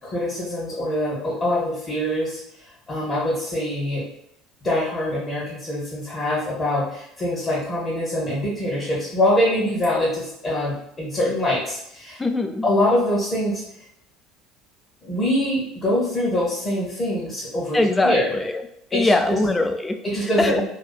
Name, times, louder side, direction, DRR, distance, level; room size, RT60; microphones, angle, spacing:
voice 1, 0.0-2.4 2.9-4.0 4.6-12.2 12.6-13.6 15.0-18.3 18.9-19.4 20.0-20.6, left 1 dB, 30° left, -7 dB, 1.0 m, -24 dB
voice 2, 12.2-12.7 17.7-18.6 18.9-20.0 20.4-20.6, left 2 dB, 15° left, 6 dB, 0.3 m, -21 dB
2.8 x 2.3 x 2.2 m, 0.78 s
figure-of-eight pair, 65°, 0 cm